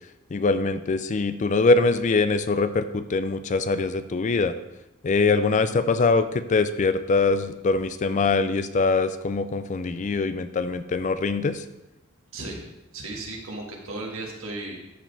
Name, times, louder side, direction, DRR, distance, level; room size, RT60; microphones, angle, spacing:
voice 1, 0.3-4.5 5.0-11.6, left 3 dB, 35° left, 12 dB, 0.4 m, -23 dB
voice 2, 12.9-14.8, right 2 dB, 75° right, -1 dB, 1.8 m, -35 dB
13.0 x 5.1 x 3.4 m, 0.93 s
head